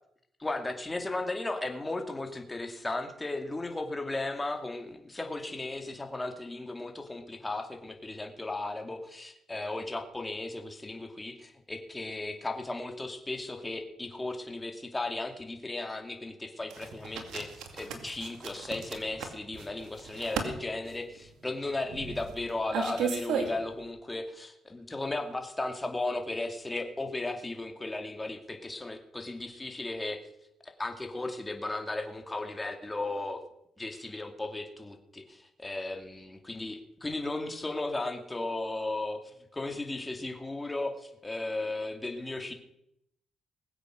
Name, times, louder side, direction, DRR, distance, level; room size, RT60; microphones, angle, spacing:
voice 1, 0.4-30.2 30.6-33.4 33.8-39.2 39.5-42.5, left 2 dB, 15° left, 5 dB, 2.3 m, -35 dB
sound 1, 16.7-23.8, right 6 dB, 80° right, 2.1 m, -36 dB
20.0 x 8.1 x 6.4 m, 0.77 s
cardioid pair, 90°, 0 cm